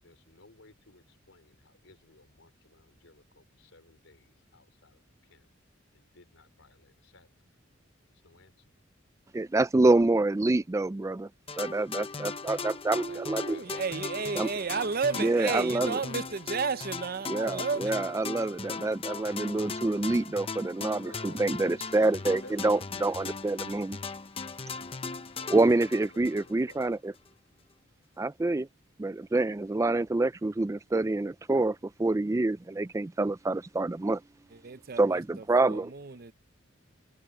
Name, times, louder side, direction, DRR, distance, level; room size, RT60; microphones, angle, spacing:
voice 1, 0.0-5.5 5.9-7.3 8.2-8.7 12.9-14.1 14.3-15.2 15.5-16.4 20.8-22.6 25.5-26.8, left 2 dB, 80° left, 4.3 m, -55 dB
voice 2, 9.3-11.3 11.6-13.6 14.4-14.5 15.2-15.9 17.3-24.0 25.5-27.1 28.2-28.7 29.0-34.2 35.0-35.9, right 2 dB, 15° right, 0.3 m, -27 dB
sound 1, 11.5-26.9, left 4 dB, 30° left, 0.8 m, -38 dB
voice 3, 12.9-18.0 34.5-36.3, right 5 dB, 50° right, 0.7 m, -33 dB
head